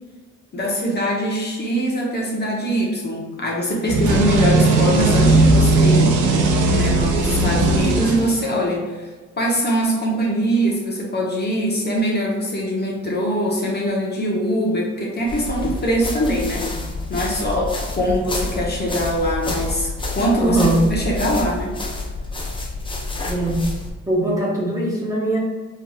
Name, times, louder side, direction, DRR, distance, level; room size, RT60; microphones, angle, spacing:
voice 1, 0.5-6.2 6.7-9.1 9.4-16.6 17.1-20.6 20.9-21.7, equal, 35° left, -3 dB, 1.1 m, -22 dB
sound 1, 3.9-8.8, right 2 dB, 80° right, 0.7 m, -17 dB
sound 2, 15.3-23.9, left 2 dB, 15° left, 0.7 m, -28 dB
voice 2, 20.4-20.8 23.3-23.7 24.1-25.4, right 1 dB, 10° right, -4 dB, 1.0 m, -21 dB
4.7 x 3.2 x 2.4 m, 1.4 s
cardioid pair, 90°, 30 cm